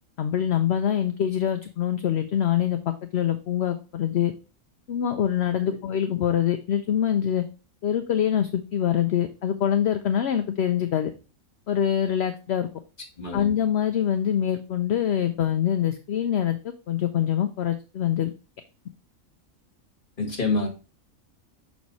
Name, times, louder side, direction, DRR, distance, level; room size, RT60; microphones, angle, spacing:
voice 1, 0.2-4.3 4.9-7.4 7.8-11.1 11.7-12.7 13.3-16.6 16.9-18.3, left 9 dB, 60° left, 8 dB, 0.8 m, -24 dB
voice 2, 13.2-13.5 20.2-20.7, left 3 dB, 40° left, 3 dB, 1.9 m, -27 dB
6.2 x 4.7 x 4.0 m, 0.33 s
omnidirectional pair, 1.4 m